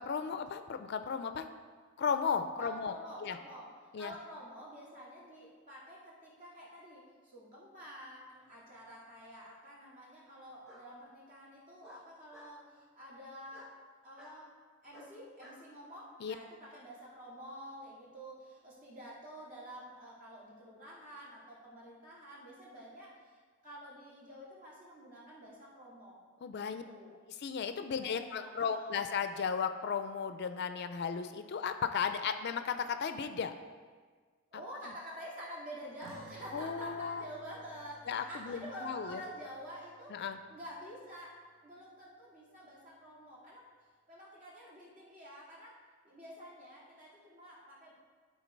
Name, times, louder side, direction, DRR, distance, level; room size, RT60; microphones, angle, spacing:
voice 1, 0.0-1.4 2.0-3.0 3.2-3.4 3.9-4.1 16.2-16.4 26.4-26.8 27.4-33.5 36.5-37.2 38.1-39.2 40.1-40.4, left 6 dB, 55° left, 9 dB, 0.4 m, -35 dB
voice 2, 2.5-13.7 14.0-14.5 14.8-23.4 23.6-26.2 26.5-27.1 27.9-28.9 34.5-40.2 40.5-41.4 41.6-43.6 44.1-45.8 46.0-48.0, equal, 40° right, -6 dB, 2.5 m, -49 dB
Bark, 8.5-9.1 10.6-10.9 11.8-12.6 13.5-13.7 14.2-14.4 14.9-15.6, left 1 dB, 5° right, 1.8 m, -55 dB
sound 1, 36.0-41.0, right 1 dB, 75° right, 1.0 m, -58 dB
11.5 x 3.9 x 5.2 m, 1.5 s
head